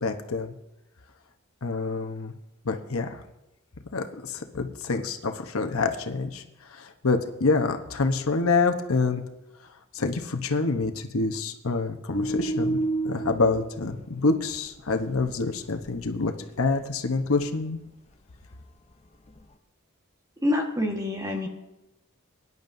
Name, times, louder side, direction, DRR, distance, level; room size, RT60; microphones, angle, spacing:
voice 1, 0.0-0.5 1.6-2.3 2.6-3.2 3.9-9.2 9.9-12.8 13.0-16.3 16.6-17.8, left 3 dB, 80° left, 5 dB, 1.0 m, -27 dB
sound 1, 12.1-13.7 14.2-14.6 14.9-15.4 15.7-16.1 16.7-16.8 19.3-19.4, right 2 dB, 30° left, 0.7 m, -29 dB
voice 2, 20.4-21.5, left 1 dB, 15° right, 2 dB, 1.4 m, -26 dB
23.0 x 11.0 x 2.7 m, 0.94 s
head